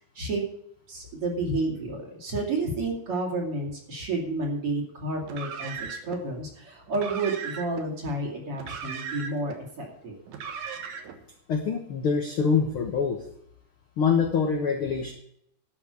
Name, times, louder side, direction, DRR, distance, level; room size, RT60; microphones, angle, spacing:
voice 1, 0.9-10.1, right 2 dB, 40° right, -1 dB, 3.3 m, -30 dB
Car, 5.2-6.2 6.9-7.9 8.5-9.6 10.3-11.2, right 6 dB, 65° right, 2.5 m, -37 dB
voice 2, 11.5-13.3 14.0-15.1, left 6 dB, 60° left, 3 dB, 1.4 m, -25 dB
12.0 x 5.9 x 8.3 m, 0.71 s
omnidirectional pair, 4.1 m